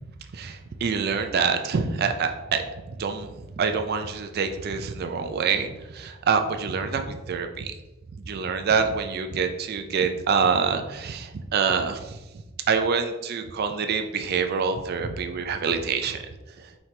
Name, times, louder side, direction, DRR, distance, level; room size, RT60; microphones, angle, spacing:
voice 1, 0.3-7.7 8.3-12.2 12.7-16.2, right 5 dB, 50° right, 7 dB, 0.4 m, -26 dB
5.6 x 2.9 x 3.2 m, 1.1 s
head